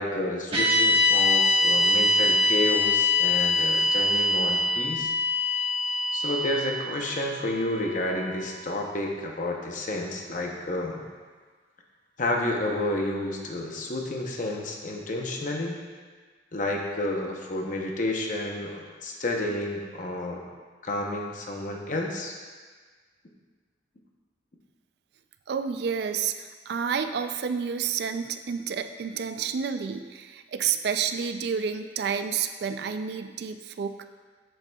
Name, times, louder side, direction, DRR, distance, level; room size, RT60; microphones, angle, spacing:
voice 1, 0.0-5.1 6.1-11.0 12.2-15.8 16.5-20.4 20.8-22.3, left 1 dB, 45° left, 1 dB, 0.8 m, -30 dB
sound 1, 0.5-8.8, left 2 dB, 30° right, 1.3 m, -24 dB
voice 2, 25.5-34.0, right 7 dB, 60° right, 8 dB, 0.3 m, -30 dB
7.7 x 7.6 x 2.3 m, 1.5 s
head